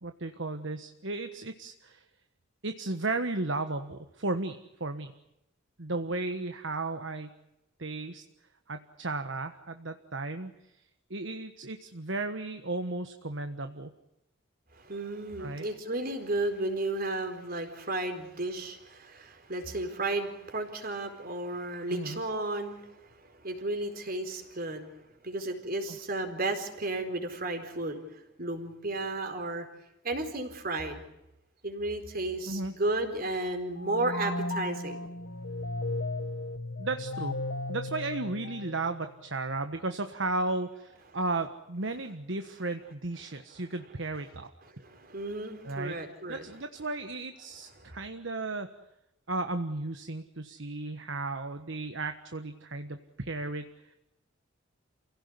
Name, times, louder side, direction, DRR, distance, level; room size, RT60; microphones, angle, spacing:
voice 1, 0.0-2.0 2.6-5.1 5.8-7.3 7.8-8.2 8.7-10.5 11.1-13.9 15.4-15.7 21.9-22.2 25.9-26.0 32.5-32.7 36.8-37.3 37.7-44.5 45.6-46.0 46.3-48.7 49.3-53.7, right 2 dB, 65° right, 8 dB, 1.4 m, -34 dB
voice 2, 14.7-24.9 25.2-29.6 30.0-31.0 31.6-35.1 44.6-46.4 47.8-48.0, right 2 dB, 50° right, 6 dB, 4.4 m, -33 dB
sound 1, 33.7-39.2, left 2 dB, 85° left, 1.6 m, -35 dB
29.0 x 17.0 x 9.7 m, 0.90 s
head